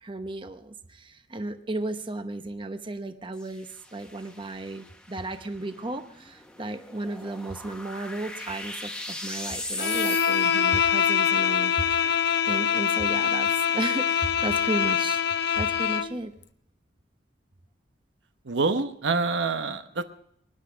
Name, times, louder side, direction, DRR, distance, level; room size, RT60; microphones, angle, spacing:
voice 1, 0.0-11.8 12.5-15.2 15.6-16.3, right 2 dB, 25° right, 8 dB, 0.9 m, -34 dB
sound 1, 3.3-10.8, left 2 dB, 5° left, 1.2 m, -39 dB
Bowed string instrument, 9.8-16.2, left 8 dB, 65° left, 0.6 m, -24 dB
voice 2, 18.4-20.0, right 4 dB, 80° right, 9 dB, 0.9 m, -26 dB
23.5 x 10.5 x 5.0 m, 0.71 s
head